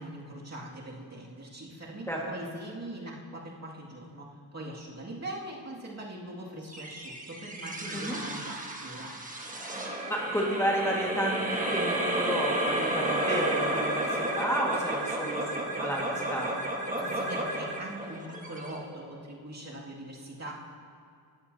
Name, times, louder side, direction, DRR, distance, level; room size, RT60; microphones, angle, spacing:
voice 1, 0.0-9.1 17.0-20.5, right 1 dB, 35° right, -4 dB, 2.3 m, -42 dB
sound 1, 6.7-19.3, right 1 dB, 20° right, 1.4 m, -32 dB
voice 2, 10.1-16.6, right 1 dB, 5° left, -4 dB, 1.8 m, -31 dB
20.0 x 13.0 x 2.8 m, 2.4 s
wide cardioid pair, 150°, 43 cm